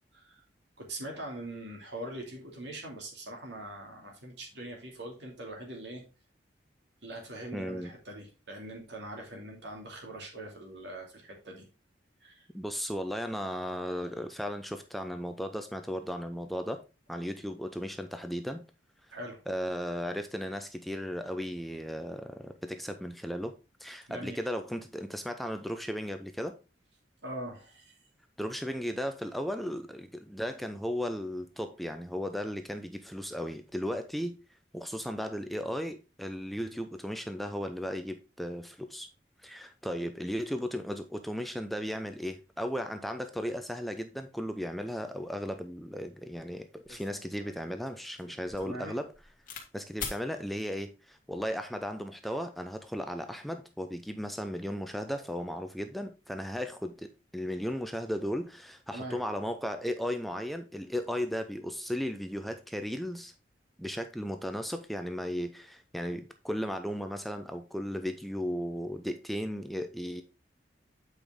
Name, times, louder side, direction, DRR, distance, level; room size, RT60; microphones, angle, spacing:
voice 1, 0.1-0.4 0.8-6.0 7.0-11.7 12.2-12.5 19.1-19.4 24.1-24.4 27.2-28.0 48.6-48.9 55.1-55.2 58.9-59.2, right 1 dB, 75° right, 2.6 m, -42 dB
voice 2, 7.5-7.9 12.5-16.8 17.1-18.6 19.5-23.5 23.8-26.6 28.4-34.3 34.7-39.1 39.4-49.1 49.5-63.3 63.8-70.2, equal, ahead, 0.5 m, -35 dB
sound 1, 46.9-49.7 50.0-50.2 51.1-51.5, left 6 dB, 45° left, 1.6 m, -43 dB
8.3 x 5.1 x 3.6 m
head